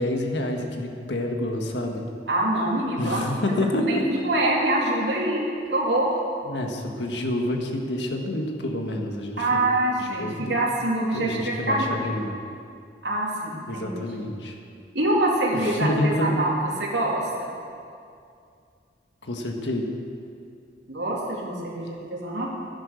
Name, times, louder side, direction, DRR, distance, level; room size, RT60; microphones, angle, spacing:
voice 1, 0.0-2.1 3.0-4.1 6.5-9.6 10.0-10.6 11.1-12.3 13.6-14.6 15.6-16.5 19.2-19.9, left 1 dB, 90° left, 2 dB, 1.6 m, -28 dB
voice 2, 2.3-3.2 3.5-5.4 5.7-6.1 9.4-12.0 13.0-13.9 14.9-16.5 16.8-17.5 20.9-22.5, right 1 dB, 85° right, -3 dB, 2.7 m, -25 dB
15.5 x 10.5 x 6.5 m, 2.4 s
head